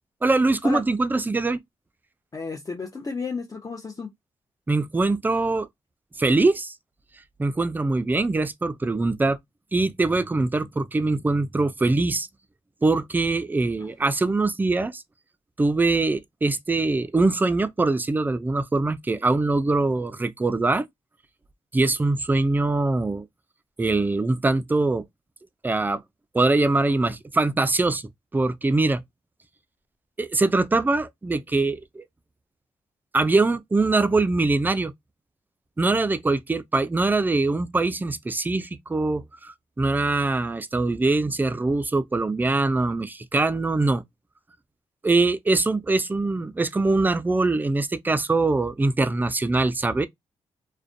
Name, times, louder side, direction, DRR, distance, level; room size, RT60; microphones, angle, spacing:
voice 1, 0.2-1.6 4.7-5.7 6.2-6.7 7.4-9.4 9.7-12.3 12.8-15.0 15.6-20.9 21.7-23.3 23.8-25.1 25.6-26.0 26.3-29.0 30.2-32.0 33.1-34.9 35.8-44.0 45.0-50.1, right 3 dB, 15° right, 0.3 m, -23 dB
voice 2, 2.3-4.1 13.8-13.9, left 4 dB, 30° left, 0.6 m, -32 dB
2.4 x 2.1 x 2.5 m
cardioid pair, 60°, 11 cm